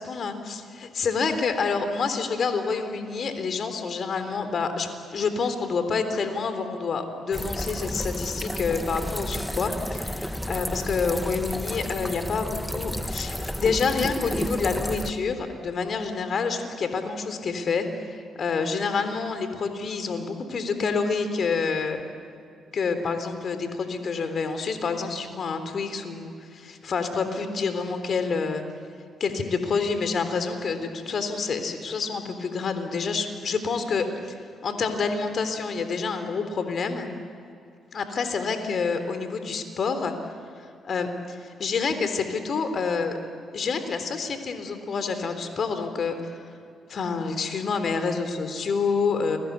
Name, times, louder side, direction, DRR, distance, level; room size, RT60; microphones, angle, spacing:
voice 1, 0.0-22.0 22.7-28.6 29.2-34.1 34.6-37.1 37.9-40.1 40.8-43.2 43.5-46.4 46.9-49.4, left 5 dB, 55° left, 8 dB, 3.5 m, -28 dB
sound 1, 7.3-15.1, equal, 5° left, 1.8 m, -31 dB
30.0 x 22.5 x 8.3 m, 2.4 s
hypercardioid pair, 45°, 0 cm